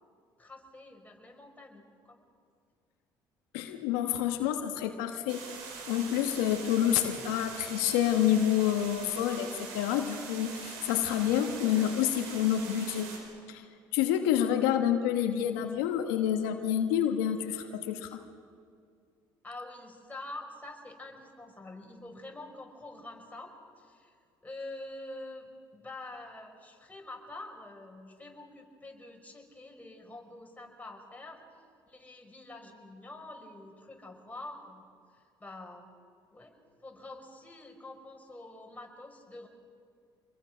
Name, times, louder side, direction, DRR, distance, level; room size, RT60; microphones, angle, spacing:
voice 1, 0.4-2.3 19.4-24.2 24.4-31.4 31.9-34.8 35.1-35.9 36.3-36.5 36.8-39.5, left 2 dB, 15° left, 1 dB, 5.5 m, -46 dB
voice 2, 3.5-5.5 5.9-13.1 13.5-18.2, left 10 dB, 85° left, 6 dB, 1.3 m, -28 dB
sound 1, 5.3-13.2, right 5 dB, 85° right, 4.5 m, -43 dB
26.0 x 22.0 x 6.2 m, 2.2 s
hypercardioid pair, 60°, 11 cm